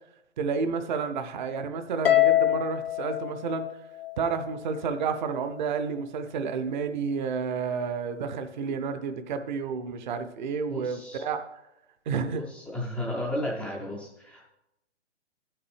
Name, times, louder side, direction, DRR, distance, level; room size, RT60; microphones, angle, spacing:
voice 1, 0.4-3.6 4.2-11.4 12.1-12.4, right 5 dB, 40° right, 8 dB, 0.6 m, -30 dB
Harp, 2.0-4.5, left 13 dB, 55° left, 0.5 m, -24 dB
voice 2, 10.7-11.2 12.3-14.5, left 1 dB, ahead, -9 dB, 0.4 m, -34 dB
13.5 x 5.9 x 3.2 m, 0.90 s
figure-of-eight pair, 125°, 35 cm